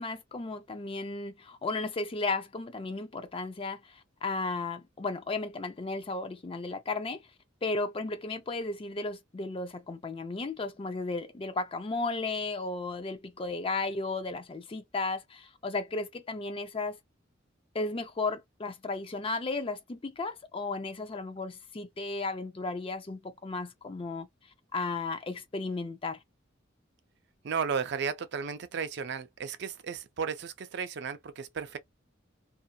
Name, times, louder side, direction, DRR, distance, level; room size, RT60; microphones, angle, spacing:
voice 1, 0.0-7.2 7.6-17.0 17.7-24.3 24.7-26.2, left 3 dB, 30° left, 0.4 m, -34 dB
voice 2, 27.4-31.8, right 6 dB, 60° right, 0.4 m, -34 dB
2.6 x 2.3 x 2.3 m
head